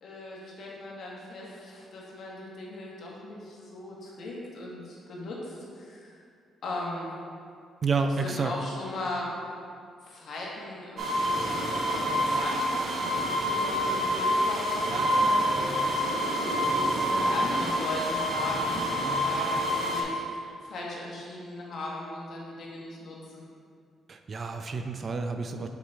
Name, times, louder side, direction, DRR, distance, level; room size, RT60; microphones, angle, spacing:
voice 1, 0.0-6.2 6.6-7.1 8.0-9.4 10.0-23.4, left 1 dB, 65° left, -4 dB, 1.4 m, -38 dB
voice 2, 7.8-8.5 24.1-25.7, right 4 dB, 40° right, 6 dB, 0.4 m, -29 dB
sound 1, 11.0-20.0, equal, 65° right, 1.0 m, -27 dB
5.6 x 4.9 x 3.7 m, 2.3 s
cardioid pair, 90°, 0 cm